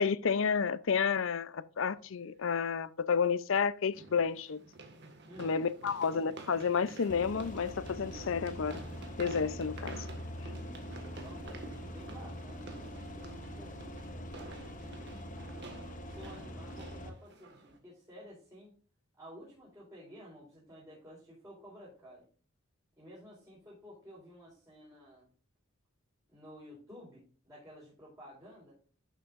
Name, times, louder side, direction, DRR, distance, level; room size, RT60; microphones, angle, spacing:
voice 1, 0.0-4.6 5.4-8.8 9.2-10.0, left 6 dB, 65° left, 0.5 m, -31 dB
sound 1, 2.0-2.1 3.9-17.8, right 2 dB, 55° right, 1.7 m, -50 dB
sound 2, 7.1-17.1, equal, 40° left, 0.9 m, -44 dB
voice 2, 11.2-15.6 16.1-18.7 19.2-22.3 23.0-25.3 26.3-28.8, equal, 15° right, 4.1 m, -53 dB
11.0 x 7.1 x 2.5 m
head